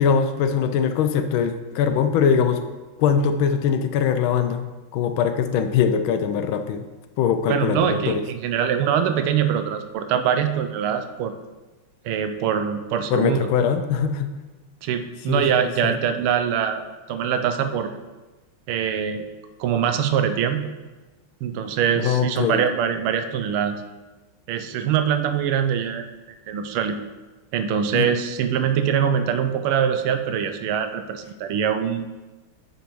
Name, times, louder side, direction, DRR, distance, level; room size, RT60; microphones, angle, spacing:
voice 1, 0.0-2.6 3.0-4.6 4.9-6.8 7.2-8.2 13.1-14.3 15.3-15.9 22.0-22.6 27.9-28.1, left 7 dB, 80° left, 9 dB, 1.3 m, -22 dB
voice 2, 7.5-11.4 12.0-13.4 14.8-16.8 17.1-17.9 18.7-19.3 19.6-20.7 21.4-23.8 24.5-26.1 26.5-27.0 27.5-32.0, right 8 dB, 90° right, 8 dB, 1.5 m, -23 dB
9.0 x 5.3 x 3.1 m, 1.2 s
omnidirectional pair, 2.3 m